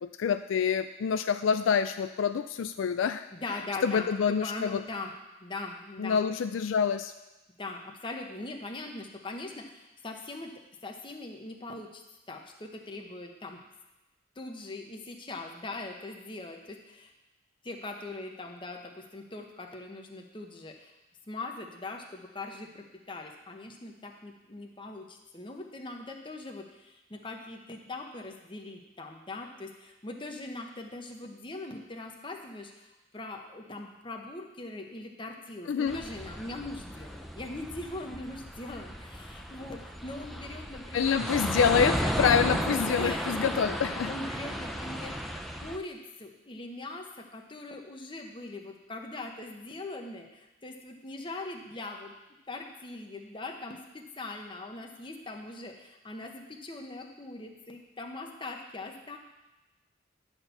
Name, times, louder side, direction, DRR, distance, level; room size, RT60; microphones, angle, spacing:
voice 1, 0.0-3.2 3.8-4.8 6.0-7.1 35.7-36.0 40.9-44.1, left 6 dB, 70° left, 10 dB, 0.3 m, -27 dB
voice 2, 3.3-5.1 5.4-6.2 7.6-10.5 10.8-12.0 12.3-13.6 14.4-17.1 17.6-20.9 21.3-32.9 33.1-41.2 42.0-42.5 42.9-43.3 44.0-45.2 45.6-52.1 52.5-59.2, left 2 dB, 25° left, 2 dB, 1.0 m, -41 dB
sound 1, 35.9-45.8, equal, ahead, 0.5 m, -34 dB
11.0 x 4.4 x 6.8 m, 1.0 s
head